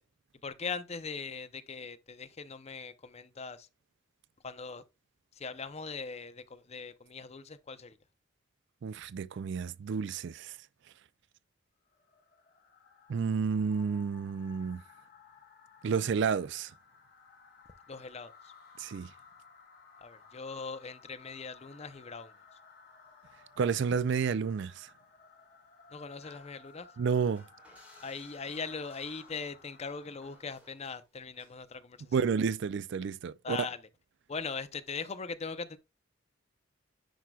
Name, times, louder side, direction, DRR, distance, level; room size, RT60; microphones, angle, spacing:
voice 1, 0.4-3.7 4.4-4.8 5.3-8.0 17.9-18.5 20.0-22.3 25.9-26.9 28.0-32.1 33.4-33.9 34.3-35.8, left 5 dB, 30° left, 0.6 m, -40 dB
voice 2, 8.8-10.5 13.1-14.8 15.8-16.7 18.8-19.1 23.6-24.9 27.0-27.4 32.1-33.6, right 6 dB, 60° right, 0.4 m, -30 dB
sound 1, 11.8-30.8, left 5 dB, 50° left, 2.7 m, -58 dB
sound 2, 26.2-27.0 27.3-31.0 31.3-31.7 32.0-32.2, equal, 5° right, 2.9 m, -60 dB
10.0 x 4.7 x 2.3 m
head